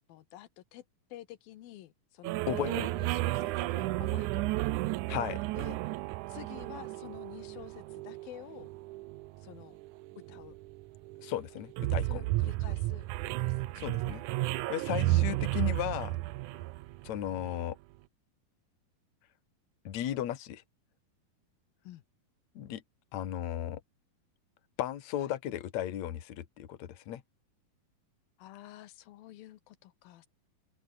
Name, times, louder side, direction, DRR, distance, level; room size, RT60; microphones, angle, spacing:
voice 1, 0.1-0.8 1.1-4.6 5.6-5.8 6.3-8.7 9.4-9.8 10.3-10.5 12.0-13.8 15.0-15.2 21.8-22.0 25.2-25.3 28.4-30.3, left 14 dB, 85° left, 3.0 m, -49 dB
sound 1, 2.2-17.7, right 18 dB, 80° right, 1.8 m, -33 dB
voice 2, 2.5-2.9 5.1-5.4 11.2-12.2 13.8-16.2 17.0-17.8 19.8-20.6 22.6-22.8 23.1-23.8 24.8-27.2, left 11 dB, 55° left, 2.7 m, -35 dB
open air
omnidirectional pair, 4.2 m